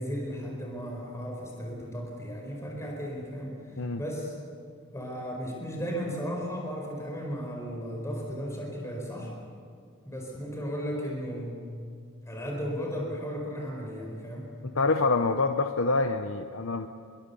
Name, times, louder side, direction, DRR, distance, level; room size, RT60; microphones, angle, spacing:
voice 1, 0.0-4.3 4.9-9.3 10.0-11.6 12.2-14.5, equal, 15° left, -1 dB, 4.6 m, -35 dB
voice 2, 14.6-16.9, left 3 dB, 65° left, 7 dB, 0.9 m, -26 dB
26.5 x 22.5 x 7.0 m, 2.2 s
head